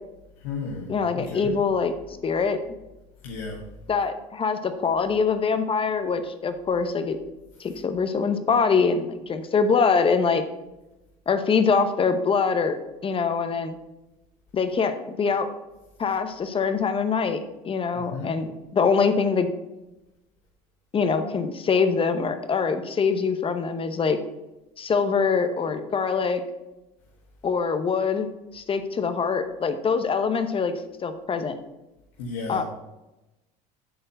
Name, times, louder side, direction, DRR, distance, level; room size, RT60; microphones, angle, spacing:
voice 1, 0.4-1.5 3.2-3.6 17.9-18.3 32.2-32.6, left 4 dB, 85° left, -3 dB, 1.4 m, -34 dB
voice 2, 0.9-1.9 2.2-2.6 3.9-7.2 7.6-10.4 11.3-12.8 13.0-13.8 14.5-15.5 16.0-17.4 17.6-19.5 20.9-24.2 24.8-26.4 27.4-28.3 28.5-30.7 31.0-31.6 32.5-32.6, left 5 dB, 30° left, 9 dB, 0.9 m, -24 dB
7.8 x 4.4 x 6.8 m, 0.98 s
supercardioid pair, 105°, 18 cm